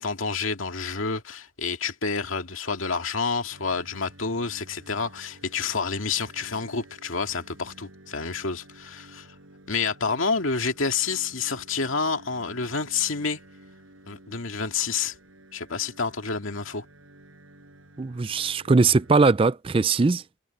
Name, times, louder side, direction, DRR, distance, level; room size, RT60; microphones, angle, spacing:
voice 1, 0.0-9.3 9.7-13.4 14.1-15.1 15.5-16.9, left 5 dB, 80° left, 2.1 m, -29 dB
sound 1, 3.5-19.3, right 1 dB, 85° right, 7.7 m, -52 dB
voice 2, 18.0-20.4, right 4 dB, 25° right, 0.4 m, -21 dB
head